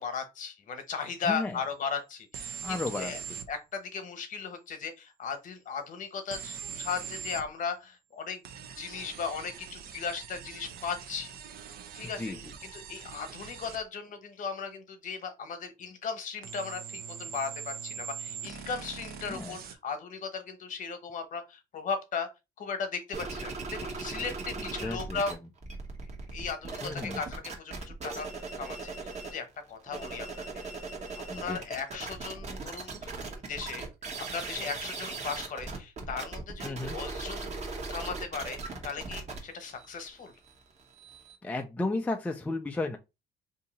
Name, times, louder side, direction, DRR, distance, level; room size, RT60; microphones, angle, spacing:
voice 1, 0.0-3.2 3.5-8.4 8.8-11.3 11.9-12.3 12.6-22.3 22.6-25.3 26.3-28.3 28.6-30.6 31.2-33.1 33.5-33.9 34.3-38.6 38.8-40.3, left 5 dB, 50° left, 1.0 m, -37 dB
voice 2, 1.2-1.6 2.6-3.1 12.0-12.5 19.3-19.6 24.6-25.2 26.8-27.2 31.3-31.6 36.6-37.0 41.4-43.0, left 2 dB, 10° left, 0.4 m, -34 dB
sound 1, 2.3-3.5 6.3-7.5 8.4-13.8 16.4-19.7, right 8 dB, 60° right, 0.6 m, -42 dB
sound 2, 23.1-25.3 25.6-29.4 29.8-41.4, right 3 dB, 40° right, 1.1 m, -39 dB
2.8 x 2.7 x 4.0 m
cardioid pair, 110°, 17 cm